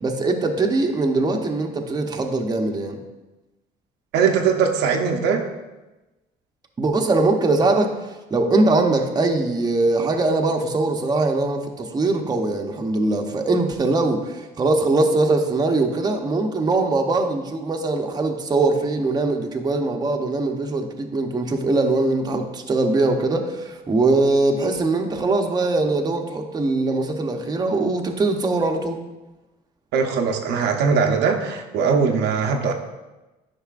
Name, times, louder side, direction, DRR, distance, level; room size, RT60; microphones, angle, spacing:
voice 1, 0.0-3.0 6.8-7.9 8.3-29.0, right 2 dB, 25° right, 3 dB, 0.8 m, -21 dB
voice 2, 4.1-5.4 29.9-32.7, right 6 dB, 85° right, 3 dB, 0.8 m, -20 dB
10.5 x 5.4 x 2.5 m, 1.1 s
cardioid pair, 110°, 17 cm